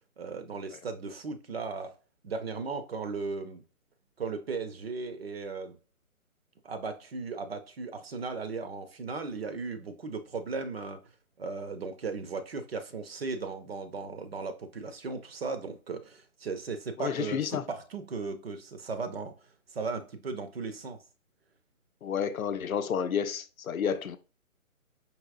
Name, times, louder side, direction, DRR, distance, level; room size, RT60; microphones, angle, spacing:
voice 1, 0.2-1.9 2.2-3.6 4.2-5.8 6.6-11.0 11.4-19.3 19.7-21.0 23.8-24.0, right 4 dB, 45° right, 0.5 m, -36 dB
voice 2, 17.0-17.6 22.0-24.2, left 7 dB, 70° left, 0.6 m, -30 dB
4.7 x 2.8 x 2.4 m
figure-of-eight pair, 145°, 43 cm